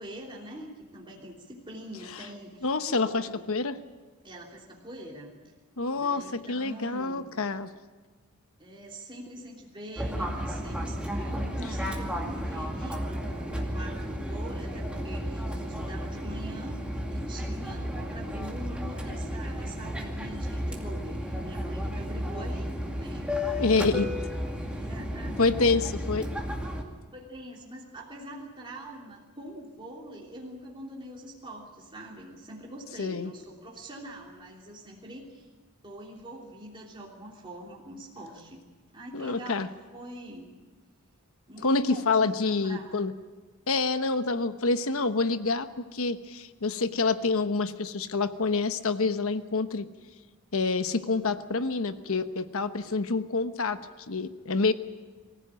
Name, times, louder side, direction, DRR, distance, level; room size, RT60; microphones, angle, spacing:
voice 1, 0.0-2.7 2.9-3.5 4.2-5.3 6.0-7.3 8.6-23.5 24.0-24.2 24.6-25.4 27.1-35.5 35.8-38.6 38.9-40.6 41.5-42.9, right 1 dB, 25° right, -3 dB, 3.1 m, -44 dB
voice 2, 2.6-3.8 5.8-7.7 23.6-24.1 25.4-26.3 33.0-33.3 39.1-39.7 41.6-43.1 43.7-49.9 50.5-53.8 54.1-54.7, left 3 dB, 65° left, 10 dB, 1.1 m, -27 dB
Fixed-wing aircraft airplane, 10.0-26.8, equal, 5° right, 2.4 m, -33 dB
24.0 x 15.5 x 8.9 m, 1.3 s
head